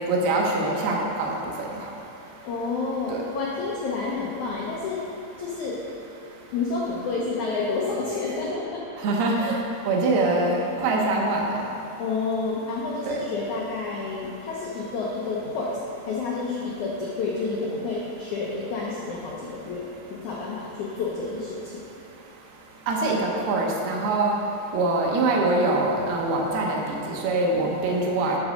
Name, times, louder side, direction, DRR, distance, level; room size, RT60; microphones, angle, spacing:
voice 1, 0.1-1.3 3.1-3.2 9.0-9.6 9.9-11.4 13.0-13.2 22.9-24.3 24.7-28.4, right 2 dB, 75° right, -1 dB, 2.9 m, -23 dB
voice 2, 2.4-5.0 5.4-5.8 6.5-8.8 12.0-15.8 16.0-19.8 20.1-21.7, left 4 dB, 80° left, -3 dB, 1.7 m, -29 dB
8.7 x 6.3 x 6.5 m, 2.8 s
omnidirectional pair, 4.7 m